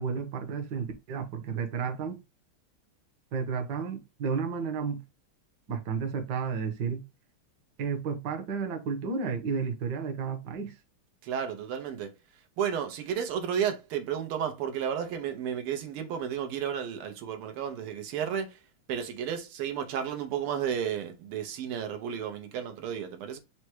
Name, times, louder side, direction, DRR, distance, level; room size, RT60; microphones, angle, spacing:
voice 1, 0.0-2.2 3.3-5.0 5.7-7.0 7.8-10.7, right 5 dB, 60° right, 1.3 m, -32 dB
voice 2, 11.2-12.1 12.6-18.6 18.9-23.4, right 8 dB, 90° right, 1.7 m, -32 dB
4.4 x 2.2 x 4.4 m
omnidirectional pair, 2.4 m